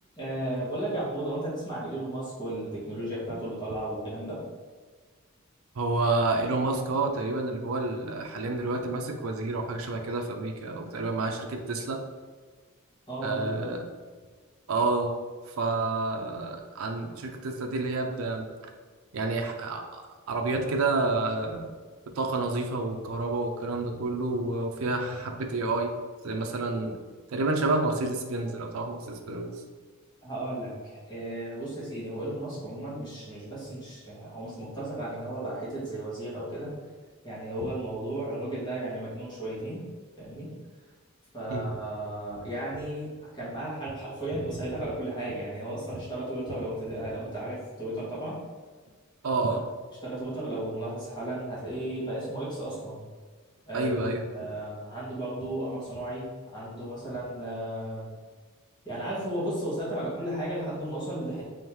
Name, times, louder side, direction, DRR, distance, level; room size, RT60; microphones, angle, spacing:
voice 1, 0.2-4.4 13.1-13.7 30.2-36.7 37.2-39.8 40.2-40.5 41.3-48.4 50.0-53.0 53.6-58.1 58.8-61.4, right 1 dB, 20° left, -8 dB, 1.5 m, -34 dB
voice 2, 5.8-12.0 13.2-13.9 14.7-15.1 15.6-18.5 19.1-20.0 20.3-21.7 22.2-25.9 26.2-27.0 27.3-29.5 41.5-41.7 49.2-49.6 53.7-54.3, right 3 dB, 85° right, 3 dB, 0.5 m, -29 dB
3.6 x 3.1 x 3.0 m, 1.5 s
head